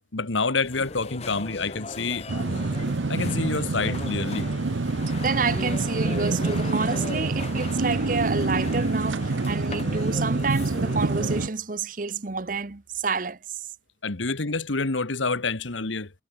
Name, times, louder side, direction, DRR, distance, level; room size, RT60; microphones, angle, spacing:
voice 1, 0.1-2.3 3.1-4.5 14.0-16.1, left 3 dB, 90° left, 1.6 m, -27 dB
sound 1, 0.6-11.5, left 3 dB, 35° left, 0.7 m, -38 dB
sound 2, 2.3-11.5, right 3 dB, 85° right, 0.8 m, -27 dB
voice 2, 5.1-13.4, right 4 dB, 45° right, 0.9 m, -29 dB
head